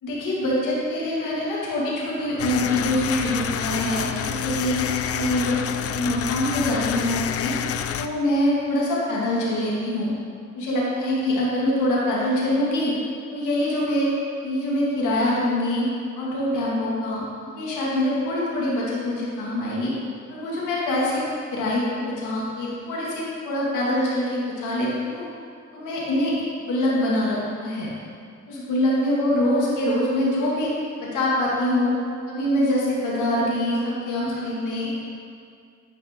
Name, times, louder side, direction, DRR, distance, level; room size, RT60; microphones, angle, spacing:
voice 1, 0.0-5.6 5.9-7.5 8.0-10.1 10.5-12.9 13.3-14.1 14.4-15.9 16.2-17.2 17.6-19.9 20.3-25.3 25.7-27.9 28.5-30.7 31.0-31.9 32.3-34.9, left 1 dB, 85° left, -5 dB, 2.0 m, -24 dB
sound 1, 2.4-8.1, left 8 dB, 50° left, 0.4 m, -28 dB
10.0 x 5.3 x 3.6 m, 2.3 s
cardioid pair, 90°, 30 cm